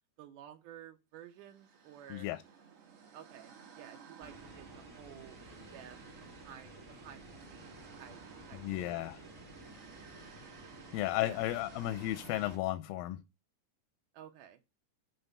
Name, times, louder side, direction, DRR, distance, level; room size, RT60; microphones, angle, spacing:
voice 1, 0.2-2.3 3.1-6.0 6.3-8.2 8.5-9.2 10.0-10.3 11.2-11.5 14.1-14.6, right 10 dB, 80° right, 2.1 m, -53 dB
sound 1, 1.3-12.6, right 6 dB, 55° right, 1.7 m, -56 dB
voice 2, 2.1-2.4 8.5-9.2 10.9-13.2, left 15 dB, 90° left, 2.3 m, -34 dB
sound 2, 4.2-12.6, right 1 dB, 30° right, 1.5 m, -53 dB
8.0 x 4.0 x 6.6 m
omnidirectional pair, 4.0 m